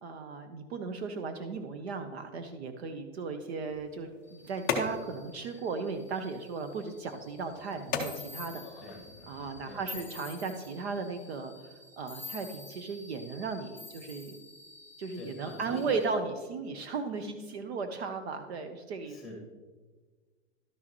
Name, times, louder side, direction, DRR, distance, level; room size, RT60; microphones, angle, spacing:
voice 1, 0.0-8.6 9.3-14.4 15.0-19.2, right 4 dB, 55° right, 7 dB, 0.8 m, -36 dB
sound 1, 3.6-9.7, left 6 dB, 15° left, 0.4 m, -39 dB
sound 2, 4.2-16.0, left 1 dB, 80° right, 2.6 m, -56 dB
sound 3, 8.0-8.7 9.9-10.7 12.1-12.8 13.8-14.4, left 3 dB, 20° right, 2.1 m, -45 dB
voice 2, 9.6-10.0 15.2-16.0 19.1-19.4, left 2 dB, ahead, -1 dB, 1.6 m, -44 dB
12.0 x 6.2 x 3.0 m, 1.4 s
supercardioid pair, 170°, 38 cm